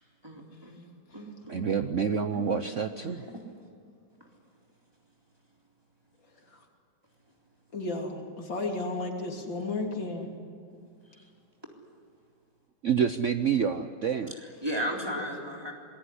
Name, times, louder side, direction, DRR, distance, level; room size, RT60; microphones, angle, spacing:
voice 1, 0.2-0.8 1.1-1.6 2.1-3.4 4.2-4.3 11.1-11.3 14.6-15.7, equal, 10° right, 0 dB, 3.7 m, -36 dB
voice 2, 1.5-3.2 12.8-14.3, right 7 dB, 55° right, 9 dB, 0.9 m, -28 dB
voice 3, 7.7-10.3, left 2 dB, 90° left, 2 dB, 3.9 m, -33 dB
26.5 x 20.5 x 9.9 m, 2.3 s
omnidirectional pair, 2.0 m